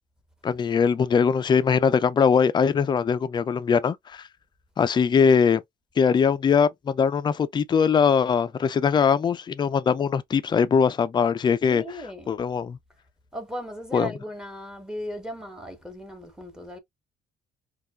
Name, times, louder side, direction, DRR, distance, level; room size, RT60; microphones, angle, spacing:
voice 1, 0.4-4.2 4.8-5.6 6.0-11.8 12.3-12.8 13.9-14.1, left 6 dB, 25° left, 0.4 m, -21 dB
voice 2, 11.7-12.3 13.3-16.8, equal, 5° right, 0.9 m, -37 dB
4.3 x 2.3 x 2.3 m
cardioid pair, 110°, 17 cm